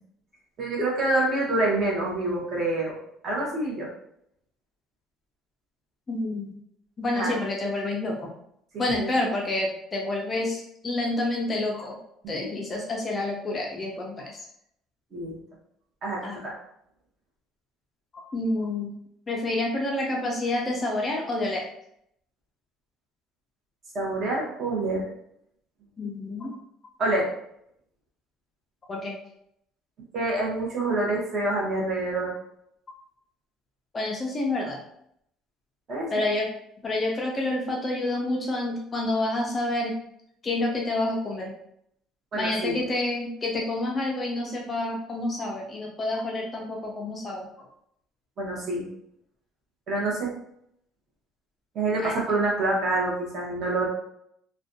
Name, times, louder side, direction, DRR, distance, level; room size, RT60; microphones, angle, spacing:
voice 1, 0.6-3.0 3.2-3.9 7.1-7.3 8.7-9.1 15.1-15.4 16.0-16.5 23.9-25.1 27.0-27.3 30.1-32.3 35.9-36.2 42.3-42.8 48.4-48.9 49.9-50.3 51.7-53.9, right 2 dB, 35° right, -3 dB, 0.8 m, -27 dB
voice 2, 6.1-6.6 7.0-8.3 8.8-12.0 12.3-14.4 16.2-16.4 18.1-18.9 19.3-21.7 26.0-26.5 28.9-29.2 33.9-34.8 36.1-36.5 36.8-40.0 40.4-41.5 42.3-47.5 52.0-52.1, left 2 dB, 20° left, -1 dB, 0.3 m, -28 dB
2.4 x 2.1 x 2.6 m, 0.73 s
cardioid pair, 175°, 0 cm